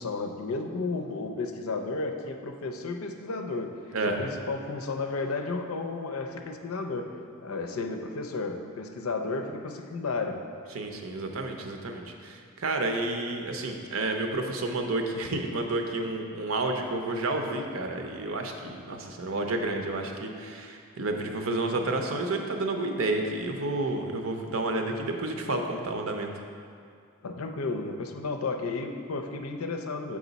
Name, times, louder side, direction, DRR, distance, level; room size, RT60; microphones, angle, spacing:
voice 1, 0.0-3.8 4.1-7.1 7.4-10.4 21.7-21.9 27.2-30.2, left 3 dB, 85° left, 5 dB, 0.6 m, -33 dB
voice 2, 10.7-26.3, right 2 dB, 70° right, 3 dB, 0.7 m, -30 dB
7.2 x 4.9 x 4.0 m, 2.3 s
head